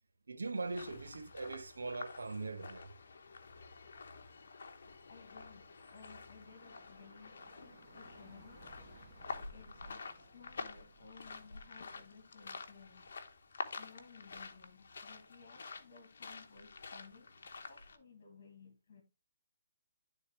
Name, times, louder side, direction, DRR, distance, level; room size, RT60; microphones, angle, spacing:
voice 1, 0.3-2.9, right 3 dB, 85° right, 1.1 m, -41 dB
sound 1, 0.6-18.0, left 4 dB, 65° left, 1.1 m, -49 dB
sound 2, 0.7-18.0, right 3 dB, 20° right, 1.6 m, -66 dB
voice 2, 5.1-8.8 9.5-13.1 13.8-19.0, left 5 dB, 50° left, 2.2 m, -58 dB
11.0 x 4.0 x 3.2 m
hypercardioid pair, 155°, 0 cm